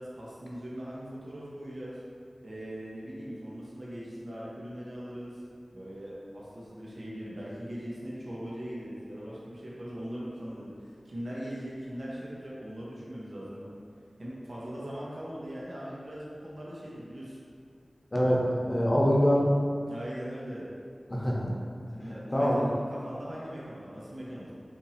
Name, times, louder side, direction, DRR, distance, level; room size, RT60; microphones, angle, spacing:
voice 1, 0.0-2.0 2.4-5.4 5.7-13.7 14.2-17.4 19.9-20.7 21.9-24.5, equal, 70° right, -7 dB, 0.9 m, -40 dB
voice 2, 18.1-19.5 21.1-21.5 21.8-22.0 22.3-22.6, equal, 35° left, -4 dB, 0.7 m, -24 dB
3.0 x 2.7 x 4.0 m, 2.2 s
cardioid pair, 40°, 0 cm